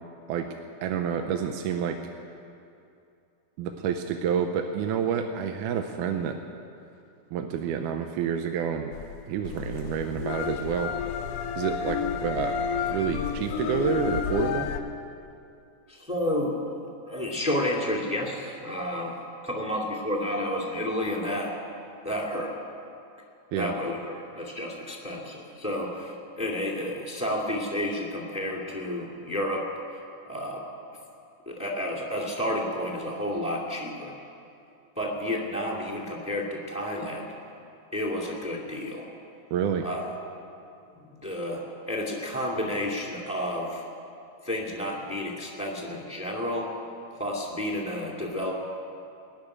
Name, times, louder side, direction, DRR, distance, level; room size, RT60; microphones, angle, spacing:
voice 1, 0.8-2.0 3.6-6.4 7.3-8.9 9.3-10.9 11.6-12.6 12.9-14.7 23.5-23.7 39.5-39.9, right 7 dB, 90° right, 5 dB, 2.2 m, -28 dB
sound 1, 8.9-14.8, left 7 dB, 80° left, 1.3 m, -30 dB
voice 2, 15.9-16.7 17.1-21.6 22.0-22.5 23.5-29.7 30.3-30.6 31.5-34.1 35.0-37.3 37.9-39.1 39.8-40.1 41.0-43.8 44.4-46.7 47.2-48.5, left 1 dB, ahead, -2 dB, 1.7 m, -31 dB
19.5 x 6.7 x 9.8 m, 2.6 s
omnidirectional pair, 3.5 m